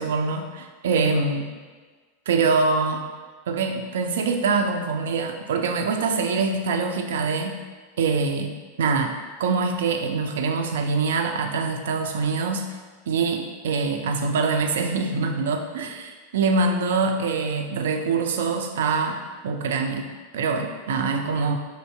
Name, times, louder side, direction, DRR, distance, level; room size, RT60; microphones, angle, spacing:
voice 1, 0.0-1.5 2.3-3.0 3.5-7.6 8.0-9.1 9.4-12.7 13.1-21.6, right 4 dB, 65° right, 5 dB, 0.4 m, -24 dB
5.1 x 2.7 x 3.3 m, 1.4 s
figure-of-eight pair, 85°, 0 cm